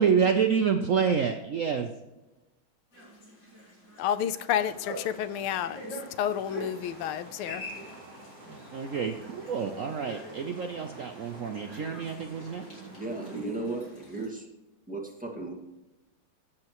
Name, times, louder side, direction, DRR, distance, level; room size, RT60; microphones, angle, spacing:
voice 1, 0.0-1.9 8.7-12.8, right 6 dB, 90° right, 5 dB, 0.7 m, -28 dB
sound 1, 2.9-14.3, equal, 60° left, 4.9 m, -45 dB
voice 2, 4.0-7.6, left 9 dB, 85° left, 13 dB, 1.5 m, -30 dB
sound 2, 4.6-13.4, right 1 dB, 40° right, 3.1 m, -50 dB
voice 3, 12.9-14.5 14.9-15.5, right 2 dB, 5° right, 0 dB, 1.6 m, -35 dB
15.5 x 7.7 x 3.0 m, 1.0 s
omnidirectional pair, 2.3 m